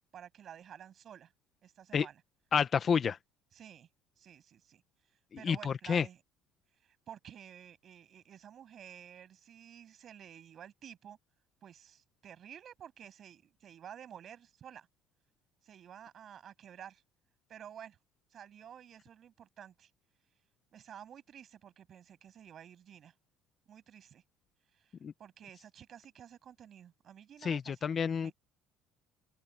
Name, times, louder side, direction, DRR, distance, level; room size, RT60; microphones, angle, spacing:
voice 1, 0.1-1.3 1.6-2.2 3.5-3.9 4.2-4.8 5.4-6.2 6.8-11.2 11.6-14.9 15.6-17.0 17.5-18.0 18.3-19.9 20.7-23.1 23.7-24.2 24.7-27.9 28.2-28.3, right 9 dB, 35° right, 7.1 m, -52 dB
voice 2, 2.5-3.2 5.4-6.1 25.0-25.1 27.4-28.3, left 6 dB, 30° left, 0.8 m, -29 dB
cardioid pair, 150°, 0 cm